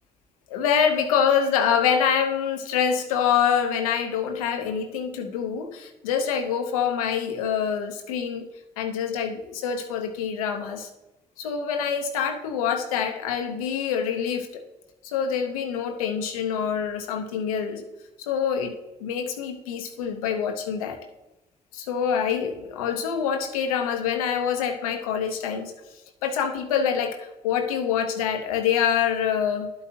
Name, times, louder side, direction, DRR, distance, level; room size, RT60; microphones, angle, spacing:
voice 1, 0.5-8.5 8.8-10.9 11.4-14.6 15.0-17.9 18.2-18.7 19.0-21.0 21.7-25.7 26.2-29.7, left 7 dB, 90° left, 6 dB, 0.8 m, -25 dB
11.0 x 8.5 x 2.9 m, 0.97 s
hypercardioid pair, 45°, 18 cm